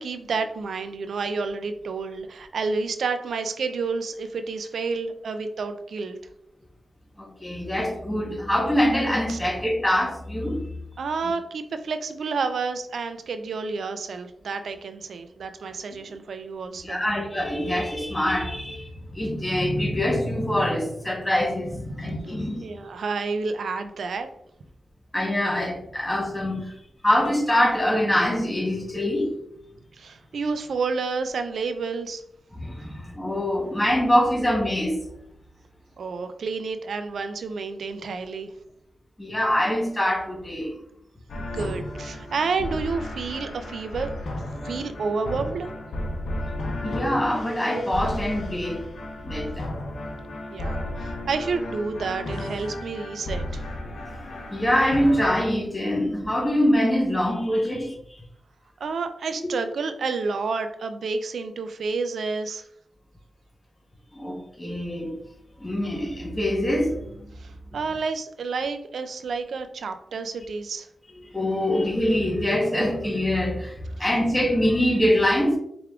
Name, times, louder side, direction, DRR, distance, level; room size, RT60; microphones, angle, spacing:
voice 1, 0.0-6.2 9.3-9.4 11.0-17.0 22.6-24.3 30.0-32.2 36.0-38.5 41.4-45.7 50.5-53.6 58.8-62.6 67.4-70.9, right 4 dB, 80° right, 8 dB, 0.3 m, -30 dB
voice 2, 7.2-10.7 16.8-22.7 25.1-26.7 27.0-29.3 32.5-35.0 39.2-40.8 44.6-44.7 46.8-48.8 49.2-49.7 54.0-54.1 54.5-58.2 64.1-65.2 65.6-67.3 71.3-75.6, left 1 dB, 15° left, 0 dB, 1.0 m, -24 dB
sound 1, 41.3-55.5, left 1 dB, 80° left, 0.7 m, -33 dB
4.6 x 3.4 x 2.3 m, 0.75 s
wide cardioid pair, 90°, 0 cm